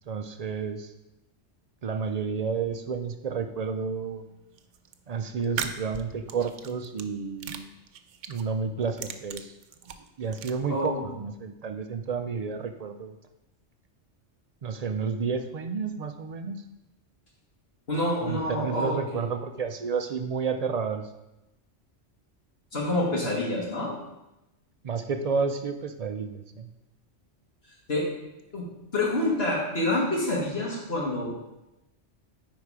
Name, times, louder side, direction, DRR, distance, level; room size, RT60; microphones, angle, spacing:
voice 1, 0.1-0.9 1.8-4.2 5.1-7.7 8.3-9.5 10.2-13.1 14.6-16.6 18.2-21.0 24.8-26.7, right 5 dB, 55° right, 8 dB, 0.4 m, -31 dB
sound 1, 4.6-4.9 5.4-7.1 7.4-8.5 8.8-10.5, right 8 dB, 85° right, 0.9 m, -37 dB
voice 2, 10.7-11.1 17.9-19.2 22.7-24.0 27.9-28.1 28.5-28.7 28.9-31.3, left 1 dB, 55° left, -4 dB, 2.2 m, -27 dB
9.6 x 4.1 x 4.8 m, 0.94 s
omnidirectional pair, 1.2 m